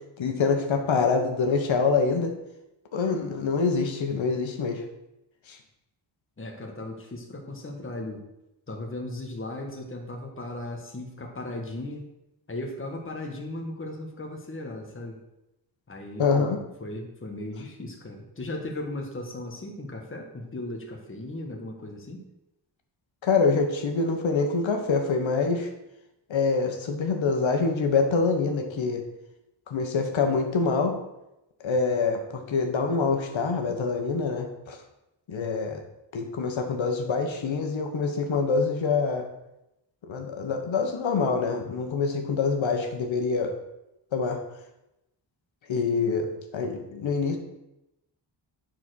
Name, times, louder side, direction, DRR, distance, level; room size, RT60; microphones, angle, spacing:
voice 1, 0.2-2.3 2.9-4.8 5.5-5.6 16.2-16.6 23.2-25.7 26.3-29.0 29.7-31.0 31.6-34.8 35.3-35.8 36.1-39.3 40.1-43.5 44.1-44.4 45.7-46.3 46.5-47.4, left 4 dB, 85° left, 4 dB, 1.6 m, -25 dB
voice 2, 6.4-8.2 8.7-12.1 12.5-15.2 15.9-22.3, left 1 dB, 25° left, 1 dB, 1.6 m, -37 dB
10.0 x 4.6 x 6.5 m, 0.89 s
wide cardioid pair, 110°, 45 cm